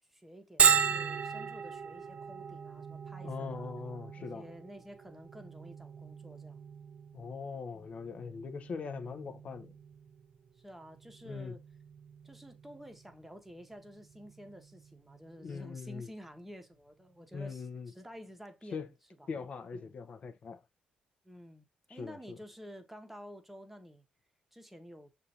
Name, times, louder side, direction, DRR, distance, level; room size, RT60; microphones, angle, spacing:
voice 1, 0.1-3.7 4.1-6.7 7.7-8.0 8.8-9.0 10.5-11.6 12.2-18.9 19.2-19.3 19.7-19.9 21.2-24.0 24.5-25.1, equal, 5° right, 0.9 m, -51 dB
Bell, 0.6-16.0, right 7 dB, 50° right, 0.4 m, -36 dB
voice 2, 3.2-4.4 7.1-9.7 11.3-11.6 15.4-16.1 17.3-17.9 18.7-18.9 19.3-20.6 21.9-22.4, left 5 dB, 50° left, 0.6 m, -41 dB
6.6 x 2.5 x 2.7 m
cardioid pair, 95°, 3 cm